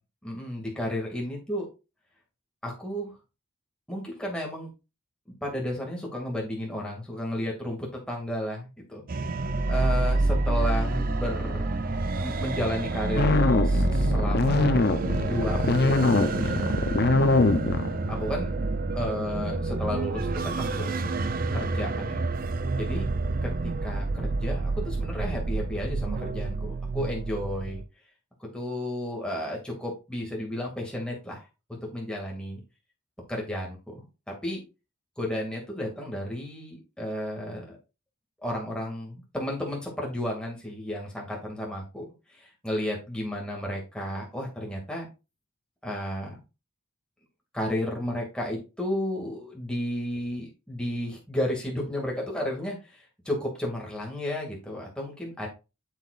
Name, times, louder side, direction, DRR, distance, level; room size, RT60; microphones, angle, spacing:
voice 1, 0.2-1.7 2.6-3.1 3.9-4.7 5.4-9.0 9.7-11.8 12.2-14.8 15.2-16.7 18.1-18.5 18.9-22.2 22.8-23.1 23.4-27.8 28.4-32.6 33.3-34.6 35.2-37.8 38.4-45.1 45.8-46.4 47.5-55.5, left 1 dB, 5° left, -2 dB, 2.2 m, -33 dB
sound 1, 9.1-27.8, right 2 dB, 40° right, 0.5 m, -28 dB
sound 2, 13.2-18.1, left 3 dB, 50° left, 0.6 m, -23 dB
7.7 x 7.3 x 2.5 m, 0.29 s
head